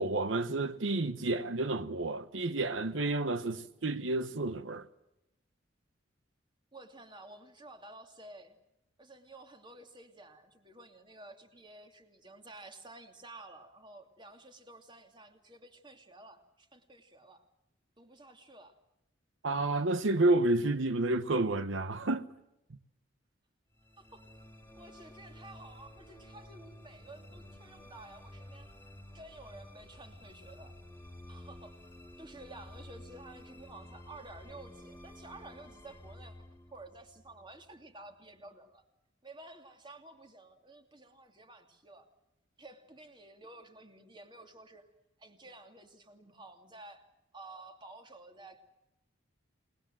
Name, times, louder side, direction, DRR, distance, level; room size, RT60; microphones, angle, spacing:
voice 1, 0.0-4.9 19.4-22.2, right 2 dB, 80° right, 1.0 m, -30 dB
voice 2, 6.7-8.6 9.0-17.5 18.0-18.8 24.0-24.3 24.8-28.7 29.1-30.7 31.3-31.8 32.2-36.3 36.7-38.8 39.2-42.1 42.6-44.9 45.2-47.0 47.3-48.6, right 2 dB, 25° right, 2.7 m, -52 dB
sound 1, 23.7-38.1, left 1 dB, 10° left, 2.7 m, -52 dB
28.5 x 20.0 x 7.8 m
head